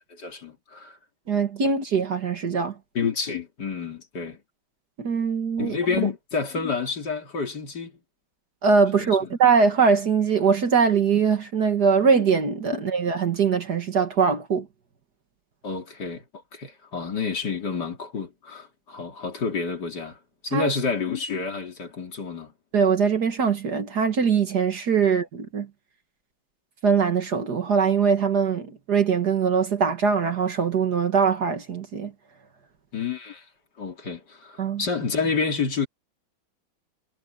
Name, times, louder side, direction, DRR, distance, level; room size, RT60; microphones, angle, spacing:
voice 1, 0.1-1.0 2.9-4.4 5.6-7.9 9.0-9.3 12.7-12.8 15.6-16.2 16.5-22.5 25.0-25.1 32.9-33.5 33.8-35.9, left 5 dB, 50° left, 3.1 m, -29 dB
voice 2, 1.3-2.7 5.0-5.8 8.6-14.7 20.5-20.7 22.7-25.7 26.8-32.1 34.6-34.8, right 6 dB, 50° right, 2.0 m, -22 dB
omnidirectional pair, 2.3 m